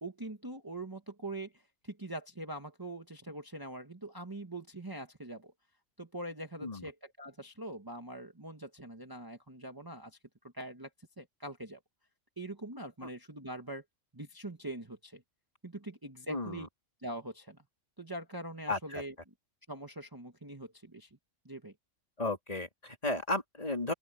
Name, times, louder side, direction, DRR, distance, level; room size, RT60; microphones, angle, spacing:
voice 1, 0.0-5.5 6.0-10.2 10.5-10.9 11.2-11.8 12.4-13.8 14.1-15.2 15.6-16.7 17.0-17.6 18.0-19.1 19.7-21.1 21.4-21.7, right 1 dB, 20° right, 1.4 m, -43 dB
voice 2, 16.3-16.7 18.7-19.0 22.2-23.9, left 2 dB, 30° left, 3.5 m, -34 dB
open air
omnidirectional pair, 1.3 m